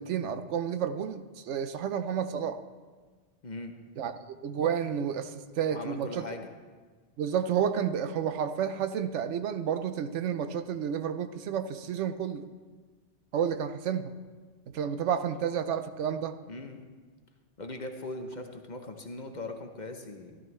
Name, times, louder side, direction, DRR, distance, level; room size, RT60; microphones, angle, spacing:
voice 1, 0.0-2.6 4.0-6.3 7.2-12.5 13.3-14.1 14.7-16.4, right 8 dB, 75° right, 10 dB, 0.9 m, -31 dB
voice 2, 5.7-6.5 16.5-16.9 17.6-20.4, left 2 dB, 45° left, 5 dB, 0.8 m, -40 dB
13.0 x 12.5 x 3.2 m, 1.4 s
omnidirectional pair, 1.2 m